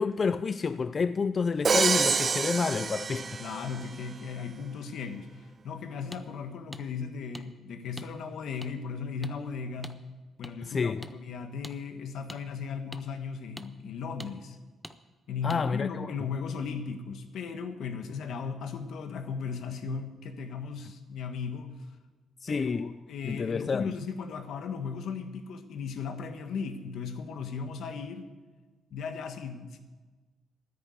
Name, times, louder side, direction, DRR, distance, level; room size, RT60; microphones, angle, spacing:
voice 1, 0.0-3.4 10.6-11.1 15.4-16.1 22.4-22.9 23.2-23.9, left 5 dB, 40° left, 0.4 m, -29 dB
Crash cymbal, 1.6-3.9, right 5 dB, 40° right, 0.4 m, -27 dB
voice 2, 3.4-10.0 10.4-14.6 15.3-21.8 22.5-28.3 28.9-29.8, left 5 dB, 70° left, 1.3 m, -36 dB
sound 1, 6.1-6.2 6.7-6.8 7.3-7.5 8.0-8.1 8.6-8.7 9.2-9.4 9.8-10.0 10.4-10.5 11.0-11.1 11.6-11.8 12.3-12.4 12.9-13.0 13.6-13.7 14.2-14.3 14.8-15.0 15.5-15.6, equal, ahead, 0.7 m, -43 dB
10.0 x 9.3 x 8.2 m
cardioid pair, 90°, 0 cm